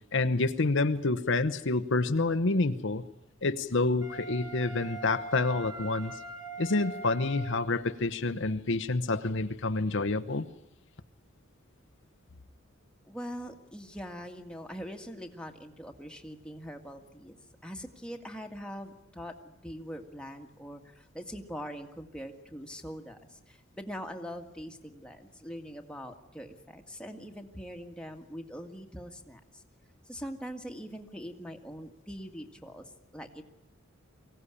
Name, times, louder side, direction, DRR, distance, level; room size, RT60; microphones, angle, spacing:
voice 1, 0.1-3.0 3.4-6.1 6.6-10.5, left 3 dB, 65° left, 10 dB, 0.9 m, -28 dB
Wind instrument woodwind instrument, 4.0-7.8, right 2 dB, 20° right, 3.9 m, -42 dB
voice 2, 13.1-29.6 30.1-33.4, equal, 5° left, 3 dB, 1.8 m, -43 dB
24.0 x 17.0 x 10.0 m, 0.87 s
head